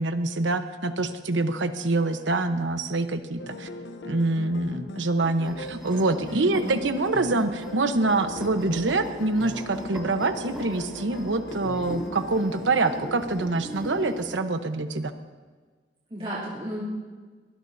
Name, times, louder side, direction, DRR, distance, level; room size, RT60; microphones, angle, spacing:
voice 1, 0.0-3.7 4.0-15.1, right 2 dB, 90° right, 8 dB, 1.0 m, -25 dB
sound 1, 3.4-13.5, left 2 dB, 70° left, 0.8 m, -39 dB
sound 2, 5.4-14.4, equal, ahead, 3.0 m, -41 dB
voice 2, 6.3-6.8 16.1-16.8, equal, 30° right, -9 dB, 3.0 m, -33 dB
22.5 x 19.0 x 2.7 m, 1.4 s
head